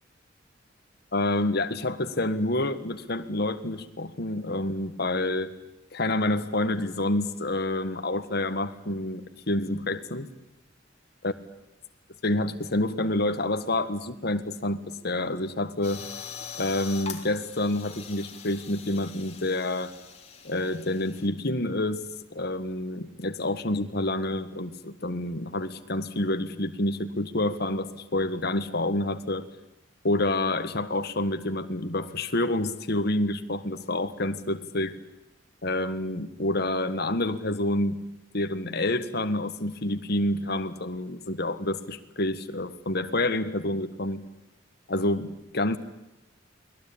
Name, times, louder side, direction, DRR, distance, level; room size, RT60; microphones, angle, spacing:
voice 1, 1.1-5.5 5.9-10.3 11.2-11.3 12.2-16.0 16.6-19.9 20.4-22.0 22.3-29.4 30.0-35.0 35.6-38.0 38.3-44.2 44.9-45.8, left 1 dB, 55° left, 9 dB, 1.7 m, -28 dB
sound 1, 15.8-21.3, left 7 dB, 35° left, 3.3 m, -42 dB
29.0 x 21.0 x 8.8 m, 0.90 s
head